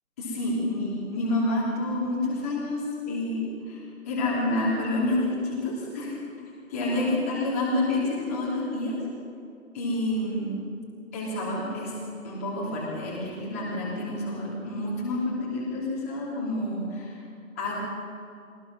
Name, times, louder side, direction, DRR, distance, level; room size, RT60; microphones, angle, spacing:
voice 1, 0.2-6.1 6.7-9.0 9.7-10.5 11.1-11.9 12.2-17.2 17.6-17.7, left 1 dB, 10° left, -6 dB, 2.9 m, -28 dB
23.5 x 18.5 x 6.2 m, 2.5 s
hypercardioid pair, 175°, 42 cm